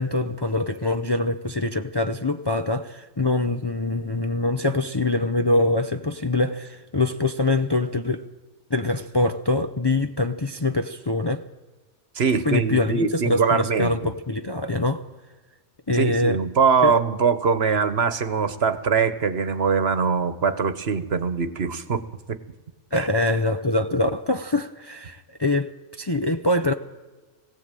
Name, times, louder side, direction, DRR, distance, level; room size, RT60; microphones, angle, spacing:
voice 1, 0.0-8.3 8.7-11.4 12.4-15.0 15.9-16.4 16.8-16.9 22.9-26.7, left 2 dB, 25° left, 0.7 m, -24 dB
voice 2, 12.1-14.1 15.9-22.0 22.3-22.4 22.9-23.1, right 5 dB, 60° right, 1.4 m, -22 dB
21.5 x 16.5 x 9.0 m
omnidirectional pair, 1.2 m